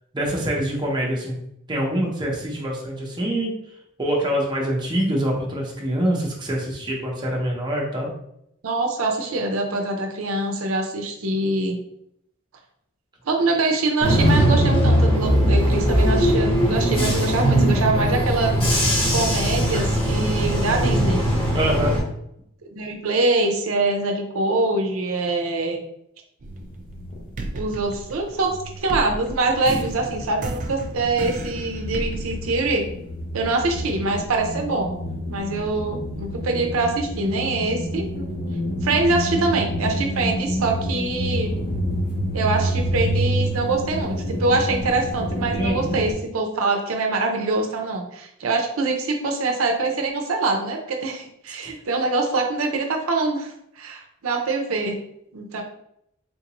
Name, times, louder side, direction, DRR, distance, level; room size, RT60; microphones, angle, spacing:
voice 1, 0.1-1.4 1.7-3.6 4.0-8.1 21.5-22.0 45.5-46.0 51.6-51.7, right 1 dB, 20° right, -2 dB, 0.7 m, -25 dB
voice 2, 8.6-11.8 13.3-18.5 19.1-21.2 22.6-25.8 27.5-32.9 33.3-35.0 35.3-38.3 38.8-41.5 42.3-55.0 55.3-55.6, right 2 dB, 85° right, 2 dB, 0.6 m, -24 dB
Bus / Engine, 14.0-22.0, equal, 25° left, 1.1 m, -19 dB
sound 1, 26.4-28.1 28.3-46.1, equal, 45° left, 0.7 m, -29 dB
sound 2, 26.4-27.0 27.4-33.2, right 2 dB, 40° right, 0.4 m, -33 dB
3.8 x 2.5 x 2.9 m, 0.75 s
head